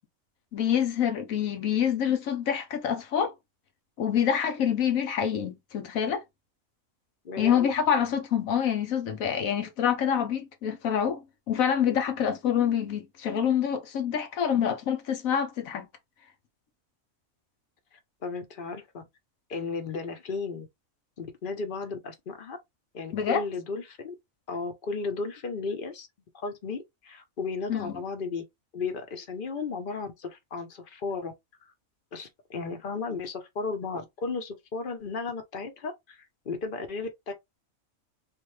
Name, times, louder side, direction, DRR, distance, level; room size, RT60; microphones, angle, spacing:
voice 1, 0.5-3.3 4.0-6.2 7.4-15.9 23.1-23.4 27.7-28.0, left 8 dB, 80° left, 1.3 m, -26 dB
voice 2, 7.2-7.7 17.9-19.0 19.5-20.7 21.2-22.6 22.9-24.1 24.5-26.1 26.3-28.4 28.7-31.3 32.1-37.3, left 4 dB, 45° left, 1.0 m, -34 dB
3.7 x 2.6 x 3.2 m
omnidirectional pair, 1.4 m